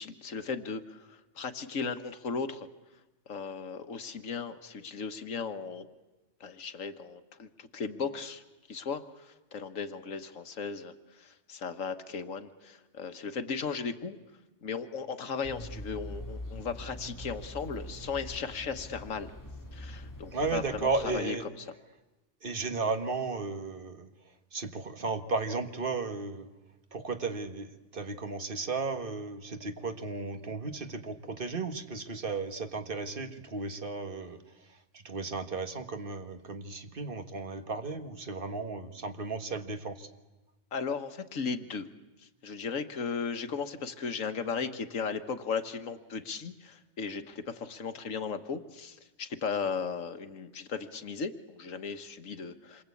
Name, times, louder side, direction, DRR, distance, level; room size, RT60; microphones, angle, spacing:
voice 1, 0.0-2.7 3.3-5.9 6.4-14.2 14.6-19.3 19.7-21.4 40.7-41.9 42.2-52.8, left 5 dB, 85° left, 9 dB, 1.7 m, -36 dB
sound 1, 15.4-21.2, left 1 dB, 15° left, 2.3 m, -43 dB
voice 2, 20.3-21.5 22.4-24.1 24.5-26.5 26.9-34.4 34.7-40.1, right 4 dB, 45° right, 8 dB, 1.8 m, -34 dB
27.5 x 23.0 x 8.5 m, 1.1 s
omnidirectional pair, 1.3 m